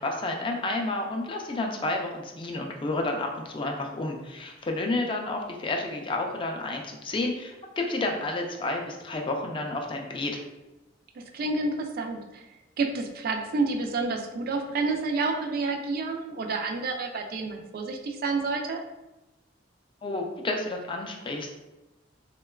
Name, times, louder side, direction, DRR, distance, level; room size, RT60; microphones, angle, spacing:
voice 1, 0.0-10.4 20.0-21.5, left 2 dB, 25° left, 2 dB, 0.3 m, -30 dB
voice 2, 11.2-12.4 12.8-18.8, right 3 dB, 50° right, 3 dB, 0.3 m, -29 dB
3.6 x 2.2 x 2.2 m, 1.0 s
head